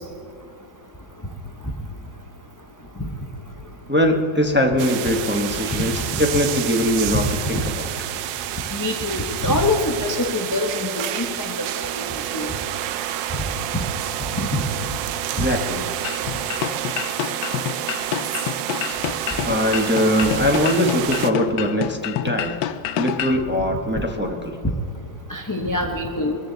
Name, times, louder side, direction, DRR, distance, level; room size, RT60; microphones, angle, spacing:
voice 1, 3.9-7.9 15.3-15.8 19.4-22.7 23.0-24.6, equal, 10° right, 2 dB, 0.7 m, -21 dB
sound 1, 4.8-21.3, right 12 dB, 90° right, 1.3 m, -29 dB
voice 2, 8.8-11.9 12.3-12.5 14.4-14.6 25.3-26.4, left 2 dB, 20° left, 2 dB, 0.5 m, -24 dB
sound 2, 16.0-23.4, left 11 dB, 75° left, 1.2 m, -28 dB
22.5 x 14.0 x 3.9 m, 2.2 s
omnidirectional pair, 2.0 m